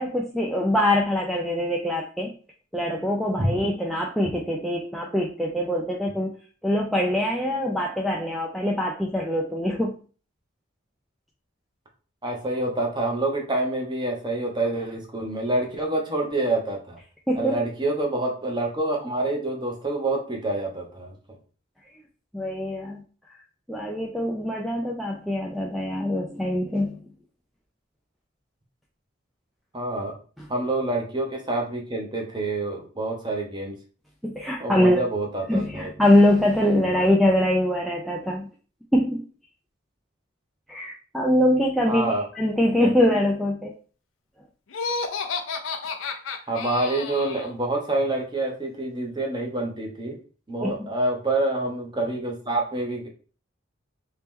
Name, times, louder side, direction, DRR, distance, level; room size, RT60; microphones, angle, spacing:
voice 1, 0.0-2.3 2.7-6.4 6.6-9.9 17.3-17.6 22.3-23.0 23.7-27.0 30.4-30.5 34.2-35.0 35.5-38.5 38.9-39.2 40.7-43.7 50.6-50.9, left 1 dB, ahead, -2 dB, 0.3 m, -23 dB
voice 2, 12.2-17.0 17.3-21.1 29.7-30.1 30.5-33.7 34.6-35.8 36.9-37.1 41.9-42.2 42.8-42.9 46.5-50.2 50.5-53.1, right 2 dB, 20° right, 1 dB, 0.8 m, -27 dB
Laughter, 44.7-47.5, left 4 dB, 70° left, 0.5 m, -31 dB
3.0 x 2.9 x 3.6 m, 0.38 s
head